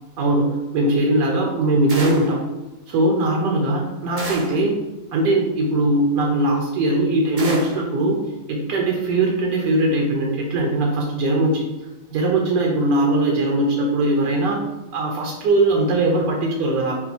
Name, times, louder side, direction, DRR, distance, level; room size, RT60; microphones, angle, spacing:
voice 1, 0.2-2.4 2.9-4.8 5.1-8.2 8.5-11.7 12.1-14.6 14.9-17.0, right 2 dB, 80° right, -1 dB, 1.3 m, -20 dB
sound 1, 1.9-2.4 4.2-4.7 7.4-7.9, right 3 dB, 50° right, 0.7 m, -31 dB
4.2 x 2.2 x 4.0 m, 1.1 s
omnidirectional pair, 1.9 m